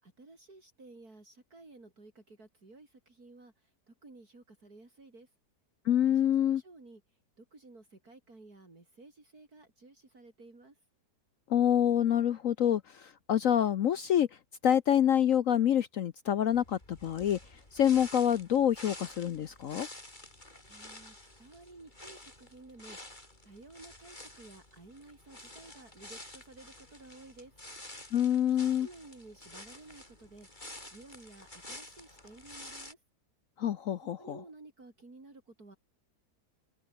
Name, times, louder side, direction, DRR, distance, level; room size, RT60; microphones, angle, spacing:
voice 1, 0.0-5.3 6.1-10.8 20.7-27.5 28.5-33.0 34.0-35.8, right 2 dB, 60° right, 5.4 m, -54 dB
voice 2, 5.9-6.6 11.5-14.3 14.6-17.4 17.7-19.9 28.1-28.9 33.6-34.4, left 10 dB, 60° left, 1.0 m, -27 dB
sound 1, 16.5-32.9, left 1 dB, 25° left, 5.7 m, -50 dB
omnidirectional pair, 1.8 m